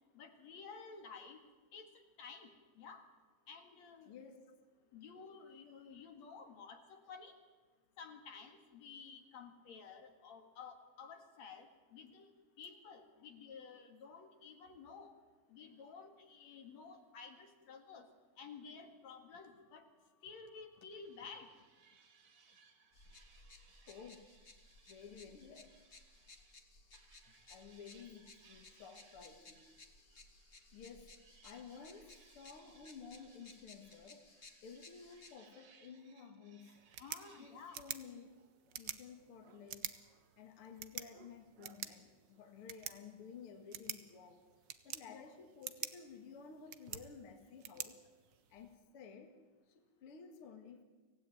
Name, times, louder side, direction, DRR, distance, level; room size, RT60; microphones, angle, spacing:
voice 1, 0.1-1.4 1.7-1.9 2.2-2.5 2.8-3.0 3.5-4.1 4.9-7.3 8.0-12.3 12.6-15.1 15.5-18.1 18.4-19.9 20.2-21.5 37.0-37.9 45.1-45.2, left 5 dB, 65° left, 6 dB, 3.1 m, -53 dB
voice 2, 4.1-4.5 23.9-24.4 24.9-26.0 27.5-29.7 30.7-31.1 31.4-34.3 34.6-36.9 37.4-38.3 38.8-40.0 40.4-44.4 44.8-48.0 48.5-49.4 49.7-50.8, left 6 dB, 50° left, 6 dB, 2.4 m, -54 dB
sound 1, 20.9-26.6 26.9-37.8, right 6 dB, 50° right, 2.4 m, -68 dB
sound 2, 22.9-35.4, left 3 dB, 30° left, 1.5 m, -60 dB
sound 3, 36.7-48.7, right 9 dB, 75° right, 1.0 m, -49 dB
25.0 x 16.5 x 9.2 m, 1.3 s
omnidirectional pair, 3.4 m